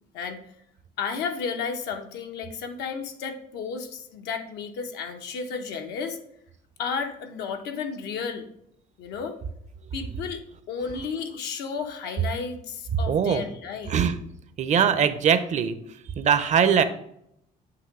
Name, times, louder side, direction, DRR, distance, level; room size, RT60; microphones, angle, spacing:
voice 1, 1.0-6.2 6.8-8.4 9.0-9.4 9.9-13.9, left 5 dB, 80° left, 4 dB, 0.9 m, -33 dB
voice 2, 13.1-13.4 13.9-14.1 14.6-15.8 16.2-16.8, right 7 dB, 45° right, 12 dB, 0.6 m, -21 dB
7.8 x 3.0 x 4.8 m, 0.73 s
cardioid pair, 110°, 17 cm